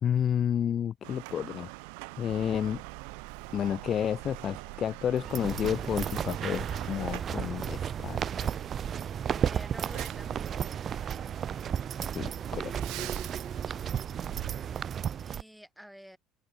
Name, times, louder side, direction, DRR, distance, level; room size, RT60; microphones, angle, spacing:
voice 1, 0.0-1.7 2.2-2.8 3.5-8.5 12.1-13.1, left 9 dB, 40° left, 0.5 m, -31 dB
sound 1, 1.0-7.2, right 34 dB, 85° right, 1.3 m, -45 dB
Truck, 2.3-15.4, right 20 dB, 70° right, 2.8 m, -46 dB
sound 2, 5.2-15.4, right 8 dB, 40° right, 2.3 m, -33 dB
voice 2, 9.4-10.8 13.7-14.1 15.2-16.2, equal, ahead, 6.3 m, -49 dB
open air
cardioid pair, 115°, 0 cm